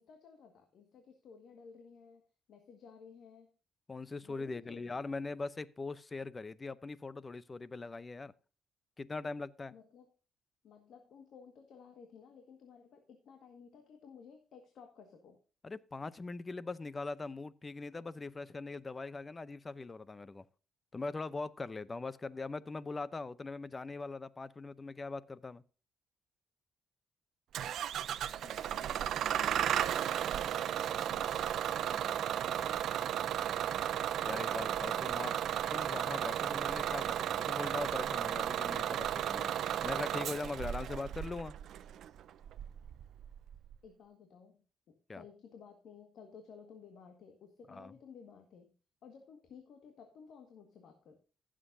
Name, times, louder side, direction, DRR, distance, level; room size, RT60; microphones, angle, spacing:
voice 1, 0.0-2.2 2.5-3.5 4.2-5.0 9.7-10.1 10.6-15.4 28.3-32.9 34.9-35.7 43.8-44.6 44.9-48.7 49.0-51.2, left 6 dB, 70° left, 1.8 m, -55 dB
voice 2, 3.9-8.3 9.0-9.7 15.6-20.5 20.9-25.6 34.2-35.3 35.7-39.5 39.8-41.5 45.1-45.2 47.7-47.9, left 3 dB, 25° left, 0.7 m, -41 dB
Bus / Engine starting, 27.5-43.8, right 10 dB, 75° right, 0.6 m, -34 dB
15.5 x 7.5 x 2.7 m
cardioid pair, 90°, 0 cm